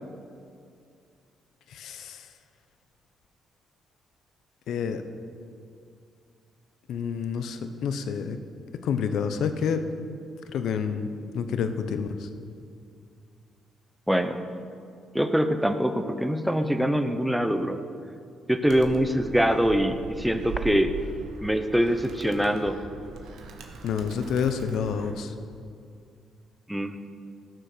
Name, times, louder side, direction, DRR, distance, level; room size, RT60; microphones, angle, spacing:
voice 1, 1.7-2.3 4.7-5.0 6.9-8.4 8.8-9.9 10.4-11.1 11.3-12.3 23.8-25.3, left 6 dB, 75° left, 9 dB, 0.8 m, -28 dB
voice 2, 14.1-14.4 15.1-17.8 18.5-20.9 21.4-22.8 26.7-27.0, equal, 5° right, 8 dB, 0.8 m, -24 dB
Animal, 18.6-25.1, right 4 dB, 80° right, 1.2 m, -40 dB
14.0 x 6.5 x 6.7 m, 2.3 s
cardioid pair, 90°, 0 cm